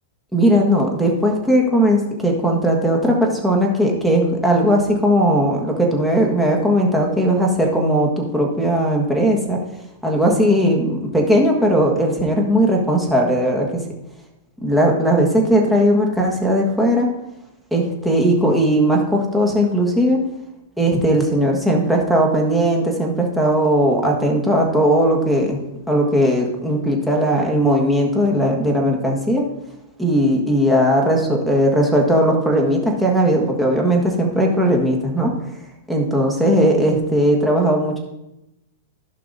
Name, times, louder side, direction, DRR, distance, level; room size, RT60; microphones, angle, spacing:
voice 1, 0.3-9.6 10.0-13.8 14.6-17.1 17.7-20.2 20.8-25.6 25.9-29.4 30.0-35.3 35.9-38.0, equal, 5° right, -1 dB, 1.5 m, -18 dB
15.0 x 5.7 x 2.7 m, 0.90 s
hypercardioid pair, 145°, 0 cm